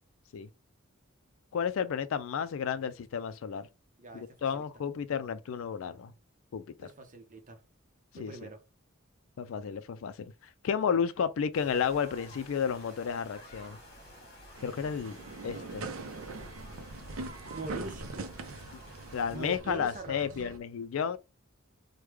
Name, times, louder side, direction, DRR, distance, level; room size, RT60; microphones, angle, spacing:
voice 1, 1.5-3.7 4.1-6.1 6.5-6.9 8.1-8.5 9.4-10.3 10.6-13.8 14.6-15.2 15.4-15.9 18.7-18.8 19.1-21.2, left 7 dB, 70° left, 0.4 m, -32 dB
voice 2, 6.8-7.6 8.1-8.6 17.5-18.3 19.3-20.2, right 2 dB, 40° right, 0.7 m, -42 dB
sound 1, 11.5-19.6, equal, 50° left, 1.1 m, -52 dB
sound 2, 14.6-20.6, right 3 dB, 85° right, 0.5 m, -42 dB
3.2 x 2.2 x 3.4 m
head